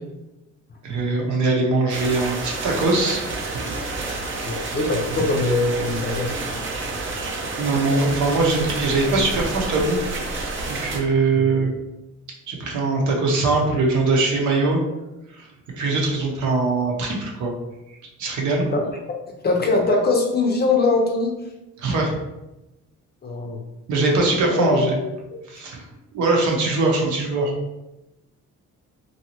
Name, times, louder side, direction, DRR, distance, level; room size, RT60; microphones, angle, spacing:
voice 1, 0.8-3.2 3.5-3.7 7.6-10.0 10.7-11.7 12.5-14.8 15.3-15.5 15.7-17.5 18.2-18.7 21.8-22.1 23.9-24.9 25.5-25.9 26.1-27.5, right 3 dB, 75° right, 0 dB, 0.8 m, -21 dB
sound 1, 1.9-11.0, right 3 dB, 40° right, 0.6 m, -29 dB
voice 2, 4.5-6.3 11.3-11.4 18.7-18.9 19.4-21.4 23.2-23.6 24.4-24.9 25.3-25.4, left 3 dB, 35° left, 1 dB, 0.5 m, -22 dB
2.7 x 2.3 x 2.9 m, 0.98 s
cardioid pair, 90°, 30 cm